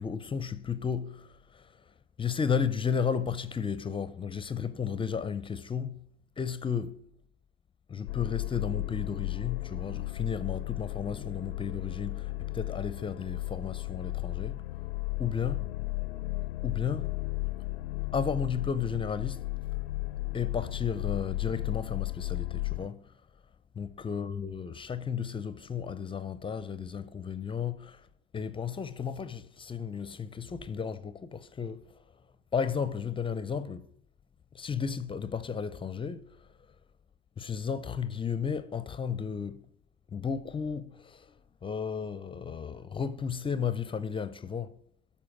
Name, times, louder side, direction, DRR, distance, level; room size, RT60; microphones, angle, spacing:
voice 1, 0.0-6.1 6.4-7.1 7.9-14.7 15.2-15.6 16.6-17.2 18.1-19.5 20.3-23.2 23.7-28.1 28.3-32.0 32.5-33.9 34.5-36.5 37.4-39.7 40.1-44.8, left 6 dB, 20° left, 0.5 m, -34 dB
sound 1, 8.1-22.9, left 19 dB, 85° left, 0.5 m, -34 dB
12.5 x 4.4 x 6.0 m
hypercardioid pair, 85°, 29 cm